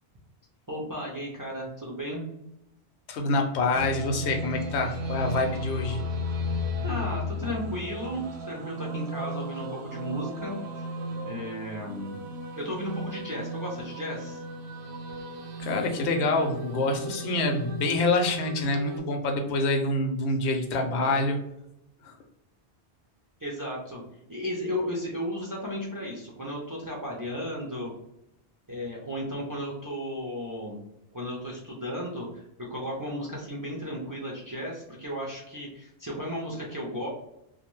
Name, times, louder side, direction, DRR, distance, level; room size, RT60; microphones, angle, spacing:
voice 1, 0.7-2.2 5.4-5.5 6.8-10.6 11.2-12.1 12.5-14.4 23.4-24.0 24.3-27.9 28.7-30.8 31.1-37.1, equal, 30° right, -3 dB, 0.4 m, -34 dB
voice 2, 3.1-6.0 15.6-21.4 22.0-22.1, left 2 dB, 90° left, 4 dB, 0.9 m, -26 dB
sound 1, 3.7-19.0, left 1 dB, 85° right, 0.9 m, -35 dB
2.6 x 2.2 x 3.0 m, 0.83 s
omnidirectional pair, 1.1 m